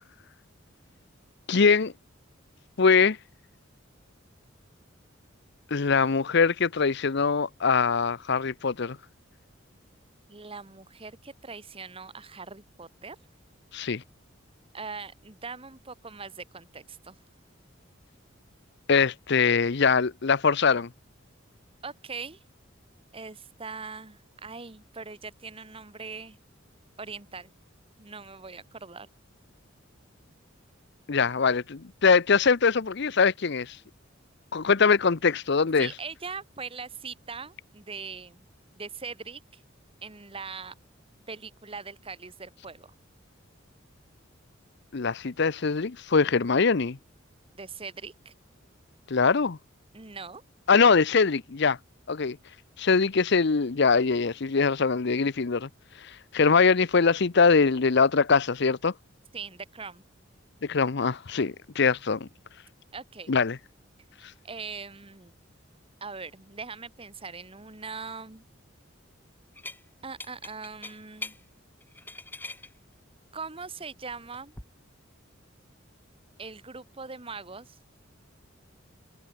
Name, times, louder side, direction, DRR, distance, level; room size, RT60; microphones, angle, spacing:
voice 1, 1.5-1.9 2.8-3.2 5.7-9.0 13.7-14.0 18.9-20.9 31.1-33.8 34.5-35.9 44.9-47.0 49.1-49.6 50.7-51.8 52.1-52.4 52.8-55.7 56.3-58.9 60.6-62.3 63.3-63.6, left 5 dB, 60° left, 0.7 m, -22 dB
voice 2, 10.3-13.2 14.7-17.2 21.8-22.4 23.1-26.4 27.0-27.5 28.0-29.1 35.8-38.4 38.7-39.6 40.0-40.7 41.3-42.9 47.5-48.3 49.9-50.4 59.3-60.0 62.9-63.3 64.4-65.3 66.0-68.4 70.0-71.4 73.3-74.5 76.4-77.8, right 4 dB, 30° right, 1.5 m, -41 dB
sound 1, 69.6-69.8 70.2-71.4 71.8-72.7 74.1-74.6, left 2 dB, 10° left, 2.5 m, -41 dB
head